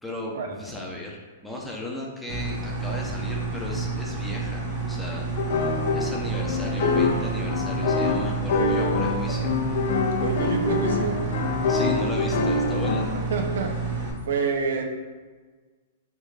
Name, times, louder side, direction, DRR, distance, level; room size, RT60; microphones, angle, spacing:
voice 1, 0.0-5.3 5.9-9.5 11.7-13.1, left 1 dB, 5° left, -3 dB, 0.8 m, -36 dB
sound 1, 2.3-14.1, right 3 dB, 40° right, 1.2 m, -30 dB
sound 2, 5.4-13.1, left 4 dB, 60° left, 0.6 m, -25 dB
voice 2, 8.5-8.9 10.2-11.2 13.3-13.7 14.3-14.8, right 5 dB, 75° right, 3 dB, 0.6 m, -27 dB
3.9 x 3.6 x 3.3 m, 1.4 s
hypercardioid pair, 130°, 0 cm